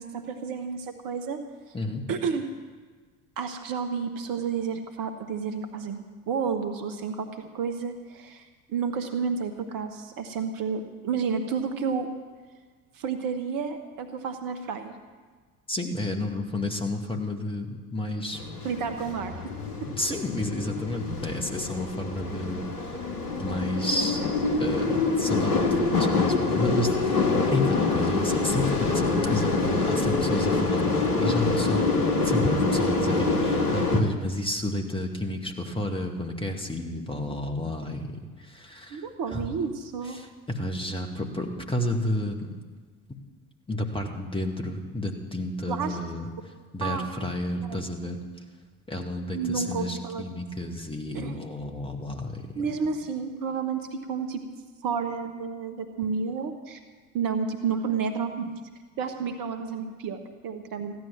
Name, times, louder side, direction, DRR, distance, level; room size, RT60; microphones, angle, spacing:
voice 1, 0.0-1.4 2.1-2.5 3.4-8.4 8.7-12.1 12.9-14.9 18.6-19.3 38.9-40.2 45.7-46.0 46.8-47.1 47.7-47.8 49.3-50.3 51.1-51.4 52.5-54.4 54.8-56.8 57.1-58.5 59.0-60.9, right 6 dB, 45° right, 8 dB, 1.5 m, -31 dB
voice 2, 15.7-18.4 20.0-22.6 23.4-24.2 24.6-31.9 32.2-38.1 38.4-39.0 39.3-39.4 40.2-42.4 43.7-46.3 46.7-48.2 48.9-52.4, left 1 dB, 10° left, 2 dB, 2.2 m, -31 dB
sound 1, 18.3-34.0, left 3 dB, 85° left, 1.1 m, -26 dB
15.5 x 11.0 x 7.5 m, 1.5 s
figure-of-eight pair, 60°, 45 cm